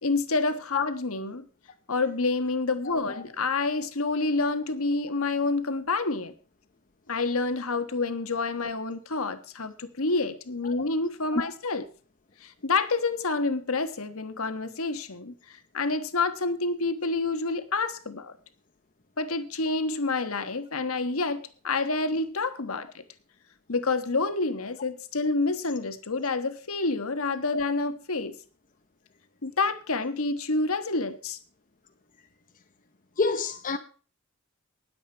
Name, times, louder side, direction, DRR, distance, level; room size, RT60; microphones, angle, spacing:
voice 1, 0.0-1.5 1.9-6.3 7.1-11.8 12.4-15.3 15.7-18.3 19.2-23.0 23.7-28.4 29.4-31.4, left 3 dB, 70° left, 1.3 m, -28 dB
voice 2, 2.8-3.2 11.3-11.5 33.2-33.8, left 3 dB, 40° left, 0.8 m, -28 dB
19.5 x 7.8 x 4.5 m
head